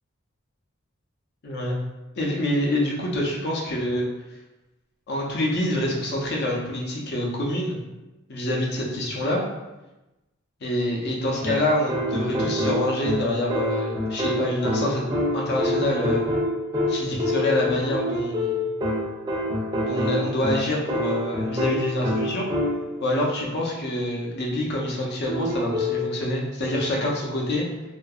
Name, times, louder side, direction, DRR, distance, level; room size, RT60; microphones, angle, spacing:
voice 1, 1.4-1.8 2.2-4.1 5.1-7.8 8.3-9.4 10.6-16.2 16.9-18.7 19.8-22.4 23.0-27.6, left 1 dB, 50° left, -2 dB, 0.6 m, -26 dB
sound 1, 11.4-23.0 25.3-26.1, left 1 dB, 20° right, 0.4 m, -26 dB
2.7 x 2.4 x 2.3 m, 1.0 s
head